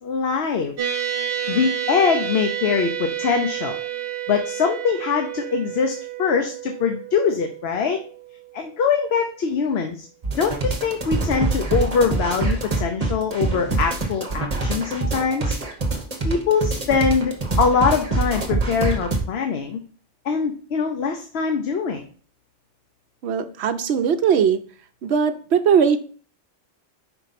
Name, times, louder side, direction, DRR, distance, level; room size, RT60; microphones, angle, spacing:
voice 1, 0.0-0.7 1.5-3.8 4.3-8.0 8.5-10.1 10.4-15.6 16.2-19.8 20.2-22.0, left 5 dB, 60° left, 5 dB, 0.9 m, -23 dB
sound 1, 0.8-9.5, right 10 dB, 50° right, 1.2 m, -30 dB
sound 2, 10.2-19.2, right 3 dB, 35° right, 1.2 m, -24 dB
voice 2, 23.2-24.6 25.0-26.0, right 7 dB, 65° right, 10 dB, 0.8 m, -19 dB
5.3 x 4.6 x 4.1 m, 0.43 s
omnidirectional pair, 1.3 m